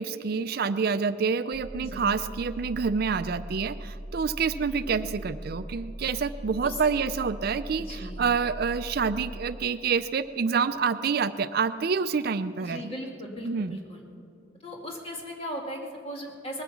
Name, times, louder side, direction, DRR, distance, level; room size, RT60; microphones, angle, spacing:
voice 1, 0.0-12.9 13.4-13.8, right 5 dB, 50° right, 12 dB, 0.4 m, -27 dB
sound 1, 1.5-9.6, right 1 dB, 20° right, 1.5 m, -40 dB
voice 2, 1.7-2.2 4.5-4.9 6.6-6.8 7.9-8.2 12.6-14.0 14.6-16.6, equal, 30° left, 0 dB, 2.1 m, -38 dB
20.5 x 9.9 x 7.1 m, 2.5 s
head